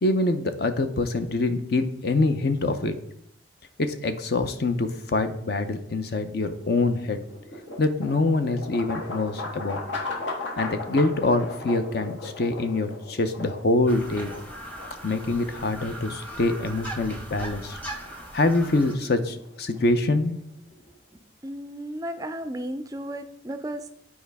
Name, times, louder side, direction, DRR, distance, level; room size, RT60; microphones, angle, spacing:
voice 1, 0.0-2.9 3.8-7.2 7.8-9.8 10.6-14.3 15.0-17.8 18.3-20.4, left 2 dB, 55° left, 9 dB, 0.6 m, -25 dB
sound 1, 6.6-20.5, left 2 dB, 75° left, 1.5 m, -38 dB
sound 2, 13.9-18.9, right 1 dB, 10° left, 0.9 m, -39 dB
voice 2, 21.4-23.9, right 1 dB, 20° right, 9 dB, 0.3 m, -34 dB
8.8 x 4.7 x 3.4 m, 0.71 s
head